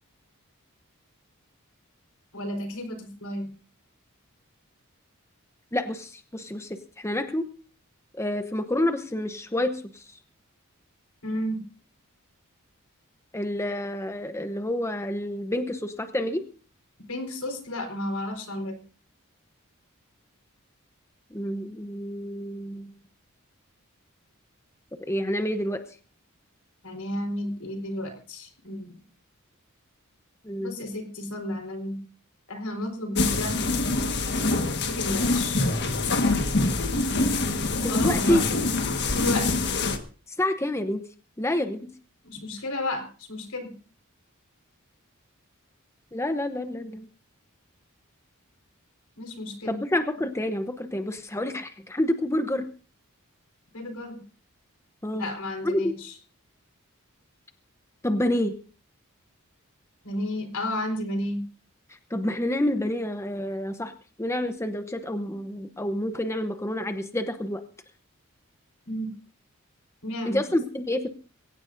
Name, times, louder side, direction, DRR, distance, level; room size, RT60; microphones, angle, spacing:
voice 1, 2.3-3.5 11.2-11.6 17.1-18.8 26.8-29.0 30.6-32.0 32.5-33.6 34.8-35.7 37.8-38.4 39.1-39.7 42.2-43.7 49.2-49.8 53.7-54.2 55.1-56.1 60.0-61.4 68.9-69.1 70.0-70.4, left 1 dB, 85° left, 5 dB, 4.4 m, -32 dB
voice 2, 5.7-7.5 8.1-10.1 13.3-16.5 21.3-22.9 25.1-25.8 30.4-30.8 37.9-38.4 40.4-41.0 41.4-41.9 46.1-47.1 49.7-52.7 55.0-55.3 55.6-56.0 58.0-58.5 62.1-63.9 64.2-67.6 70.3-71.1, left 1 dB, 10° left, 8 dB, 0.8 m, -28 dB
sound 1, 33.2-40.0, left 3 dB, 50° left, 1.6 m, -25 dB
22.5 x 17.0 x 2.7 m, 0.38 s
head